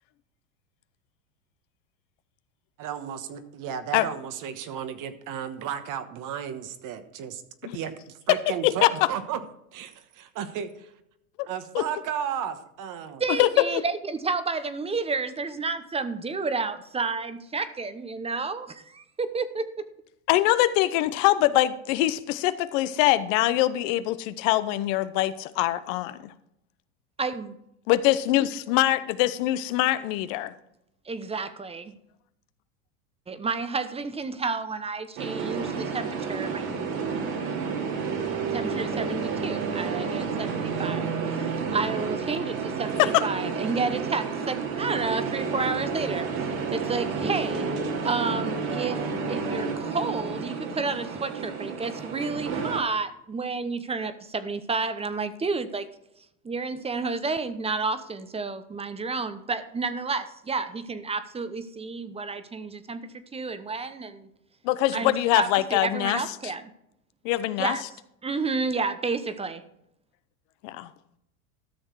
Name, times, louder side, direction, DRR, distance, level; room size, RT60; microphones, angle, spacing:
voice 1, 2.8-7.4 7.7-9.4 9.7-10.9 11.4-13.2, right 8 dB, 45° right, 10 dB, 1.3 m, -34 dB
voice 2, 13.2-19.8 27.2-27.6 31.1-32.0 33.3-36.6 38.5-41.1 41.7-46.3 46.7-47.7 48.0-55.9 56.4-63.0 63.3-64.3 64.9-66.6 67.6-67.8 68.2-69.6, right 4 dB, 15° right, 12 dB, 0.9 m, -30 dB
voice 3, 20.3-26.3 27.9-30.5 43.0-43.2 64.6-66.2 67.2-67.8 70.6-70.9, left 15 dB, 60° left, 13 dB, 0.8 m, -23 dB
sound 1, 35.2-52.8, right 5 dB, 65° right, 2.7 m, -30 dB
13.0 x 6.5 x 4.7 m, 0.79 s
hypercardioid pair, 105°, 43 cm